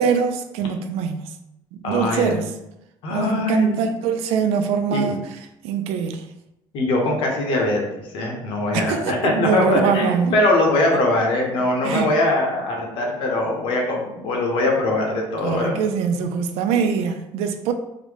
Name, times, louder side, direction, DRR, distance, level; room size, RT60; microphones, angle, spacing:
voice 1, 0.0-1.3 1.7-2.5 3.1-5.3 5.6-6.3 8.7-10.4 11.8-12.1 15.4-17.7, right 6 dB, 85° right, 7 dB, 0.4 m, -23 dB
voice 2, 1.8-2.4 3.0-3.8 4.9-5.1 6.7-15.8, left 2 dB, 60° left, 0 dB, 0.9 m, -22 dB
3.7 x 2.1 x 3.2 m, 0.87 s
cardioid pair, 155°, 10 cm